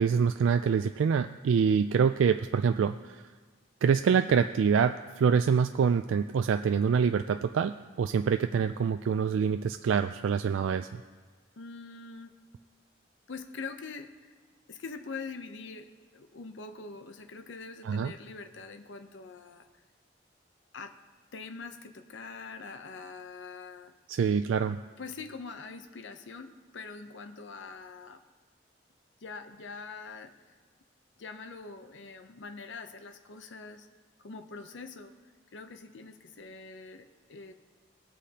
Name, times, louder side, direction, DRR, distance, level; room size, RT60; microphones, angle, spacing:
voice 1, 0.0-3.2 3.8-11.0 17.9-18.1 24.1-24.8, right 6 dB, 90° right, 8 dB, 0.3 m, -26 dB
voice 2, 11.6-12.3 13.3-14.1 14.7-15.9 16.1-19.7 20.7-20.9 21.3-23.9 25.0-28.2 29.2-30.3 31.2-33.9 34.2-35.1 35.5-37.5, left 4 dB, 75° left, 7 dB, 0.7 m, -43 dB
18.5 x 8.3 x 2.8 m, 1.5 s
head